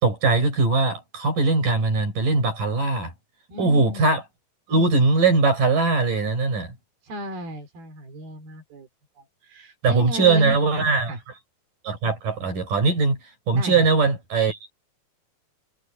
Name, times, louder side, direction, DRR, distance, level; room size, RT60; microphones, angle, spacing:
voice 1, 0.0-3.1 3.6-4.2 4.7-6.8 9.8-11.1 11.8-13.2 13.5-14.7, right 3 dB, 60° right, 8.3 m, -21 dB
voice 2, 3.5-4.0 7.0-8.9 9.2-11.2 13.5-13.9, equal, 85° right, 6.2 m, -35 dB
omnidirectional pair, 4.2 m